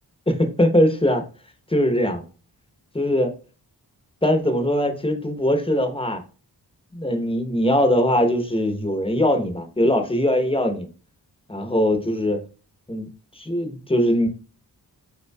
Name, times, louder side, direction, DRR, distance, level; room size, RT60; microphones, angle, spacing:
voice 1, 0.3-1.2 1.7-2.2 2.9-3.3 4.2-6.2 6.9-10.9 11.5-12.4 12.9-13.1 13.4-14.3, equal, 15° left, 5 dB, 0.8 m, -21 dB
5.3 x 4.3 x 2.2 m, 0.36 s
wide cardioid pair, 100°, 40 cm